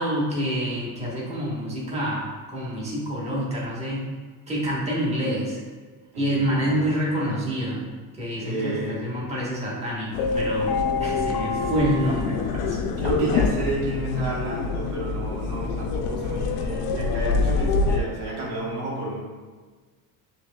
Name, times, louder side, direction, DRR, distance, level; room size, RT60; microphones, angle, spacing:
voice 1, 0.0-4.0 4.5-5.6 6.2-7.8 8.1-10.7 11.0-12.8, equal, 15° right, -6 dB, 1.3 m, -27 dB
voice 2, 6.1-6.9 8.4-9.0 13.0-19.2, right 2 dB, 75° right, -5 dB, 1.4 m, -30 dB
sound 1, 10.1-18.0, left 4 dB, 60° left, 0.5 m, -25 dB
6.1 x 2.7 x 2.3 m, 1.4 s
supercardioid pair, 95°, 42 cm